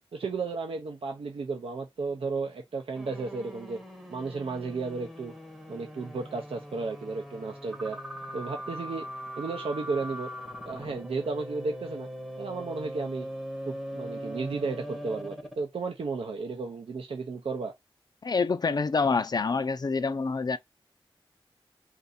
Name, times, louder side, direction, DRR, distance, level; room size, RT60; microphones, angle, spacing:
voice 1, 0.1-3.8 4.1-5.3 5.7-8.0 8.3-9.1 9.4-10.3 10.6-12.1 12.4-13.3 13.7-17.7, right 4 dB, 85° right, 0.6 m, -33 dB
sound 1, 3.0-15.7, equal, 5° right, 0.7 m, -41 dB
voice 2, 18.2-20.6, left 4 dB, 45° left, 0.4 m, -26 dB
2.6 x 2.6 x 4.0 m
wide cardioid pair, 100°, 9 cm